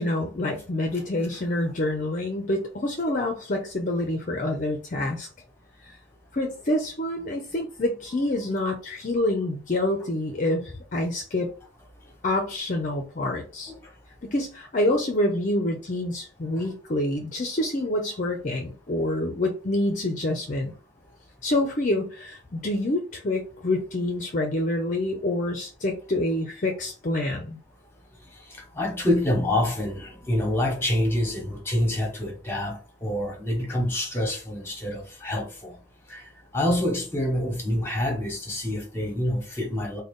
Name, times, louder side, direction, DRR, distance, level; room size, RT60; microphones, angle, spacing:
voice 1, 0.0-5.3 5.8-6.0 6.3-11.5 12.2-13.7 14.2-20.7 21.4-27.6, left 1 dB, 40° left, 0.5 m, -27 dB
voice 2, 28.7-35.8 36.1-40.0, left 1 dB, 10° left, 1.1 m, -27 dB
3.8 x 2.2 x 3.6 m
head